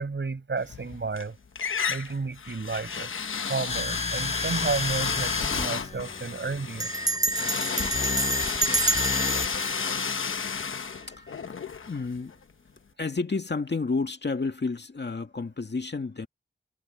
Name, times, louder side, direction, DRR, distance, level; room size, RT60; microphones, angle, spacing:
voice 1, 0.0-1.4 1.9-3.1 3.4-6.9, right 4 dB, 65° right, 5.8 m, -32 dB
sound 1, 0.6-1.2 1.6-12.4, left 6 dB, 85° left, 1.0 m, -32 dB
sound 2, 3.7-9.7, left 3 dB, 35° left, 1.0 m, -33 dB
Bell, 5.8-6.0 6.8-10.9, right 2 dB, 20° right, 0.4 m, -29 dB
voice 2, 11.1-11.5 11.9-12.3 13.0-16.3, left 4 dB, 60° left, 2.2 m, -31 dB
cardioid pair, 40°, 20 cm